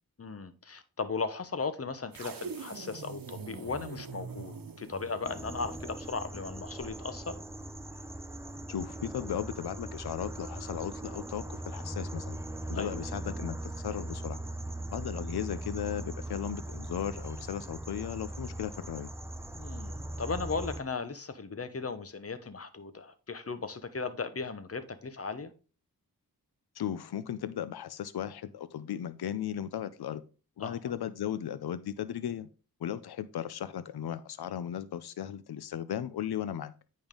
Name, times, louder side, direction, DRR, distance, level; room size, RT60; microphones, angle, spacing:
voice 1, 0.2-7.4 12.7-12.9 19.5-25.5 30.6-30.9, left 4 dB, 40° left, 1.0 m, -37 dB
sound 1, 2.1-6.4, right 5 dB, 65° right, 1.1 m, -44 dB
sound 2, 5.2-20.8, right 1 dB, 5° right, 0.6 m, -40 dB
voice 2, 8.7-12.4 12.7-14.4 14.9-19.1 26.8-30.2 30.6-32.5 32.8-36.7, left 10 dB, 85° left, 0.5 m, -36 dB
8.8 x 5.4 x 3.7 m
wide cardioid pair, 70°, 38 cm